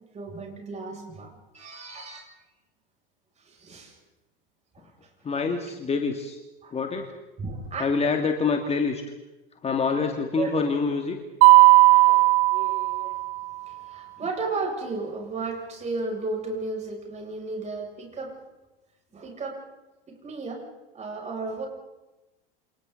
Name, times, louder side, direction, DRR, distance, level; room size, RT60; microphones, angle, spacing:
voice 1, 0.1-2.3 3.4-4.0 4.7-4.9 6.6-6.7 7.4-7.8 10.4-10.6 11.5-13.2 13.6-18.4 19.1-19.6 20.1-20.6 20.9-21.7, right 3 dB, 25° right, 0 dB, 7.3 m, -34 dB
voice 2, 5.2-6.4 6.7-7.1 7.8-9.0 9.6-11.2 14.2-14.3, left 4 dB, 20° left, 4 dB, 2.4 m, -26 dB
Mallet percussion, 11.4-13.5, right 20 dB, 45° right, 1.2 m, -16 dB
29.0 x 27.5 x 4.1 m, 1.1 s
figure-of-eight pair, 85°, 29 cm